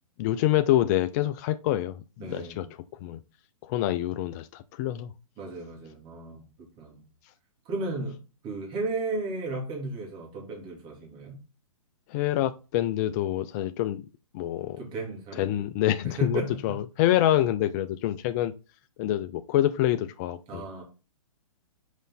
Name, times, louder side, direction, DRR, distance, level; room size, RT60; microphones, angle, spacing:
voice 1, 0.2-2.7 3.0-3.2 3.6-5.1 12.1-14.0 14.3-14.8 15.4-18.5 19.0-20.6, left 13 dB, 30° left, 0.4 m, -26 dB
voice 2, 2.2-2.6 5.4-7.0 7.6-8.2 8.4-11.4 14.8-15.6 16.0-16.8 20.5-20.8, right 2 dB, 25° right, 3.0 m, -34 dB
6.3 x 5.1 x 3.9 m
hypercardioid pair, 125°, 18 cm